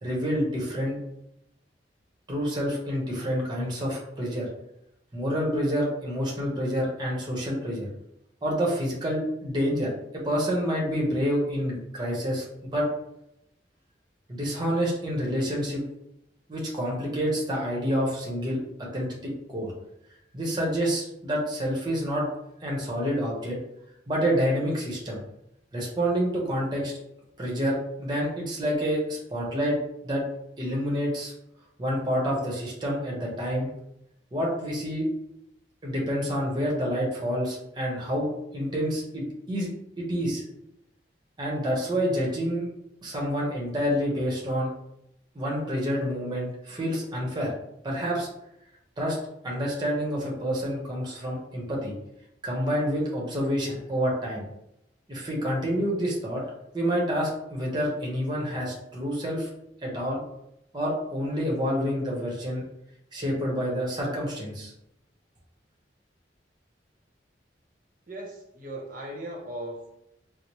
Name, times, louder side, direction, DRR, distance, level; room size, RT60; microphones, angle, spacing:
voice 1, 0.0-1.0 2.3-4.5 5.1-7.9 8.4-12.5 12.7-12.9 14.3-15.8 16.5-18.6 18.9-19.7 20.3-22.3 22.6-23.6 24.1-25.2 25.7-27.0 27.4-29.8 30.0-30.2 30.6-31.3 31.8-33.7 34.3-35.1 35.8-38.3 38.5-39.7 40.0-40.4 41.4-42.7 43.0-44.7 45.3-47.5 47.8-48.3 49.0-49.2 49.4-51.9 52.4-54.4 55.1-56.4 56.7-59.5 59.8-60.2 60.7-62.6 63.1-64.7, equal, 25° right, -3 dB, 0.8 m, -28 dB
voice 2, 68.1-69.9, right 1 dB, 50° right, -1 dB, 0.8 m, -38 dB
4.3 x 2.0 x 3.0 m, 0.80 s
head